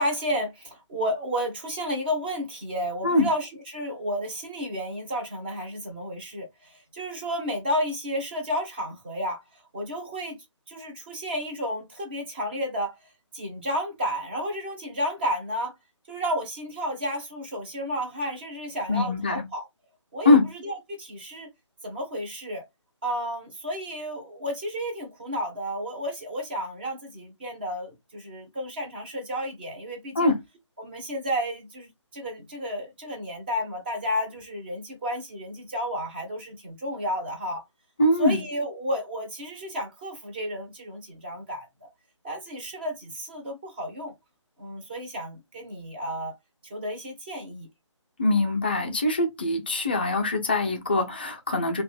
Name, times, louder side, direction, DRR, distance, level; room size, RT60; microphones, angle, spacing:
voice 1, 0.0-9.4 9.7-10.4 10.7-13.0 13.3-15.7 16.1-19.6 20.1-21.5 21.8-22.6 23.0-30.3 30.8-37.6 38.2-41.9 42.2-44.1 44.6-46.3 46.6-47.7, equal, 20° right, 0.6 m, -32 dB
voice 2, 18.9-19.4 20.3-20.4 30.2-30.3 38.0-38.4 48.2-51.8, left 2 dB, 20° left, 0.3 m, -22 dB
2.5 x 2.2 x 3.2 m
figure-of-eight pair, 150°, 16 cm